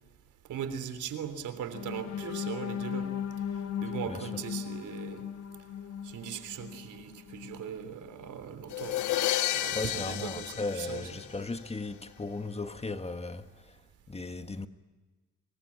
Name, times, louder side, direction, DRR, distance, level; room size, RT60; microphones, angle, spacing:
voice 1, 0.5-3.1 3.8-5.2 6.0-9.1 9.5-11.3, right 8 dB, 80° right, 3.5 m, -39 dB
sound 1, 1.7-7.7 8.1-8.3 8.7-8.9, left 8 dB, 65° left, 1.7 m, -37 dB
sound 2, 8.7-11.7, left 13 dB, 85° left, 1.5 m, -32 dB
voice 2, 9.7-13.7 14.1-14.7, left 3 dB, 20° left, 1.6 m, -36 dB
27.0 x 22.5 x 8.7 m
cardioid pair, 90°, 30 cm